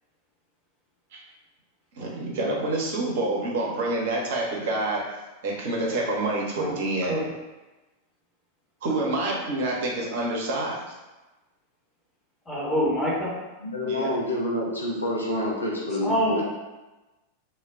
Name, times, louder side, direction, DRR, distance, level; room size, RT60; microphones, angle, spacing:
voice 1, 1.9-5.0 5.4-7.3 8.8-10.8 13.9-14.1, right 2 dB, 55° right, -2 dB, 0.7 m, -27 dB
voice 2, 12.5-13.3 16.0-16.4, equal, 15° left, -7 dB, 0.9 m, -26 dB
voice 3, 13.6-16.4, left 1 dB, 80° left, -4 dB, 0.5 m, -28 dB
2.2 x 2.1 x 3.4 m, 1.1 s
figure-of-eight pair, 90°, 0 cm